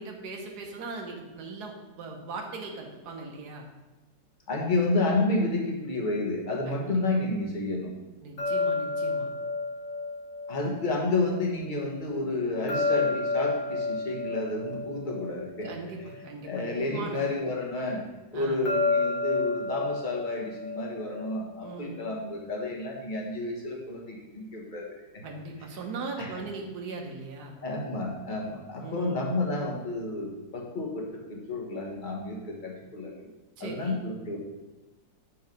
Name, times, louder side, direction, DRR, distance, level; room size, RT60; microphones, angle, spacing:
voice 1, 0.0-3.6 6.7-6.9 8.2-9.3 15.6-17.2 18.3-18.6 21.6-22.0 25.2-27.5 28.8-29.3 33.6-34.0, right 3 dB, 65° right, 1 dB, 1.6 m, -39 dB
voice 2, 4.5-7.9 10.5-15.7 16.4-18.0 18.3-25.0 26.2-26.3 27.6-33.2 33.6-34.4, left 2 dB, 30° left, -1 dB, 1.4 m, -30 dB
sound 1, 8.4-11.5 12.7-16.2 18.7-21.7, left 3 dB, 50° left, 1.5 m, -30 dB
7.7 x 4.6 x 5.3 m, 1.1 s
omnidirectional pair, 2.0 m